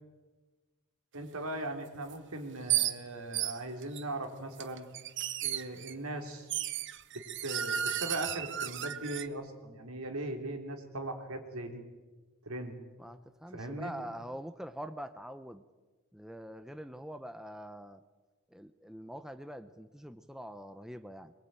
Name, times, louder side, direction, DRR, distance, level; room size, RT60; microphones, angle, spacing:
voice 1, 1.1-4.9 5.4-6.5 7.1-11.9 12.4-12.8 13.5-13.9, right 1 dB, 75° right, 5 dB, 3.5 m, -39 dB
sound 1, 2.1-2.2 2.7-2.9 3.3-4.0 4.6-5.9 6.5-9.3, right 11 dB, 55° right, 1.0 m, -33 dB
voice 2, 13.0-15.6 16.1-18.0 18.5-21.3, equal, ahead, 10 dB, 0.8 m, -44 dB
22.5 x 22.5 x 9.0 m, 1.3 s
head